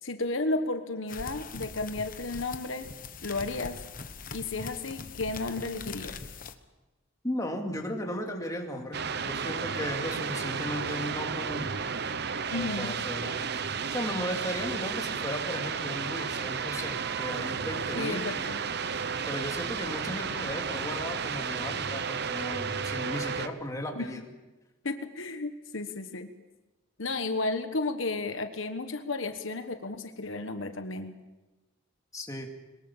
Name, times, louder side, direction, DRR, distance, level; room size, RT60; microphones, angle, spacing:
voice 1, 0.0-2.9 3.2-3.8 4.3-6.2 12.5-13.0 17.9-18.6 24.0-24.1 24.8-26.3 27.0-31.1, left 3 dB, 70° left, 8 dB, 1.3 m, -33 dB
sound 1, 1.1-6.5, left 4 dB, 40° left, 1.2 m, -42 dB
voice 2, 7.2-11.8 12.5-13.5 13.9-18.5 19.3-24.3 32.1-32.5, left 1 dB, 15° left, 2 dB, 2.4 m, -36 dB
sound 2, 8.9-23.5, right 6 dB, 55° right, 0.8 m, -33 dB
22.5 x 20.5 x 7.3 m, 1.1 s
head